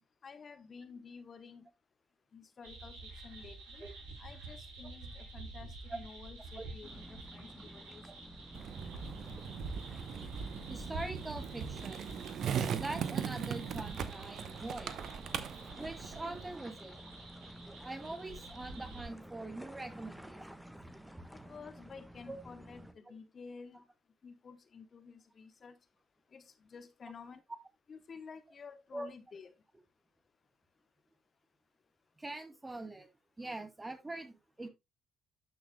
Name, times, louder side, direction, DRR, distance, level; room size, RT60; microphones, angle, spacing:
voice 1, 0.2-1.7 2.3-3.8 4.2-8.0 21.3-23.9 24.2-25.8 26.3-27.4 27.9-29.5, left 5 dB, 45° left, 0.9 m, -51 dB
sound 1, 2.6-19.1, right 3 dB, 75° right, 4.9 m, -48 dB
sound 2, 6.8-22.9, equal, 5° right, 1.4 m, -52 dB
Skateboard, 8.5-16.5, right 8 dB, 60° right, 0.8 m, -40 dB
voice 2, 10.7-12.0 12.7-15.0 15.8-16.9 17.6-20.6 22.3-22.4 28.9-29.1 32.2-33.1 33.4-34.7, right 2 dB, 20° right, 2.4 m, -43 dB
12.0 x 6.4 x 2.2 m
hypercardioid pair, 45°, 0 cm